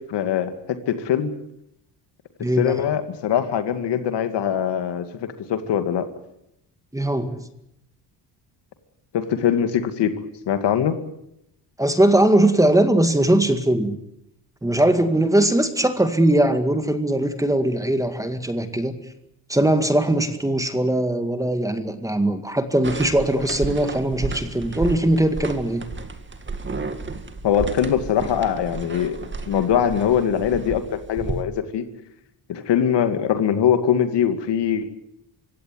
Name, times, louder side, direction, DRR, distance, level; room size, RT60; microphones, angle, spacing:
voice 1, 0.0-1.3 2.6-6.1 9.1-10.2 10.5-11.0 27.4-29.2 29.5-31.9 32.5-34.9, left 8 dB, 70° left, 9 dB, 2.4 m, -22 dB
voice 2, 2.4-2.8 6.9-7.4 11.8-14.0 14.6-18.9 19.5-25.9, right 1 dB, 10° right, 8 dB, 2.0 m, -20 dB
sound 1, 22.8-31.4, right 3 dB, 25° right, 2.1 m, -32 dB
23.5 x 17.0 x 9.6 m, 0.80 s
cardioid pair, 120°, 43 cm